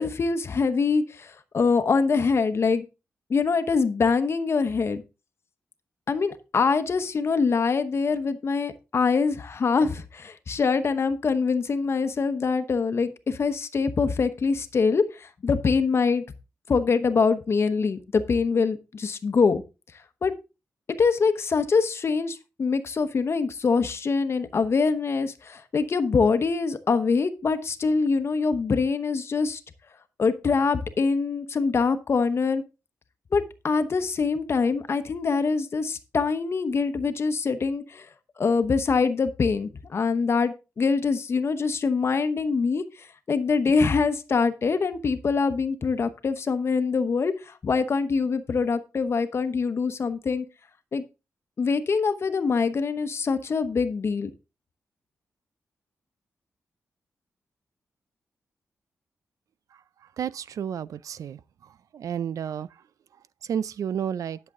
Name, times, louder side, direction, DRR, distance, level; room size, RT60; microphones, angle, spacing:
voice 1, 0.0-2.9 3.3-5.0 6.1-16.2 16.7-19.6 20.2-20.3 21.0-29.6 30.2-32.6 33.3-38.1 38.4-50.5 50.9-51.0 51.6-54.3, left 5 dB, 50° left, 1.0 m, -24 dB
voice 2, 60.2-61.4 61.9-62.7 63.5-64.4, right 8 dB, 80° right, 0.4 m, -30 dB
11.0 x 6.8 x 3.7 m
wide cardioid pair, 110°, 6 cm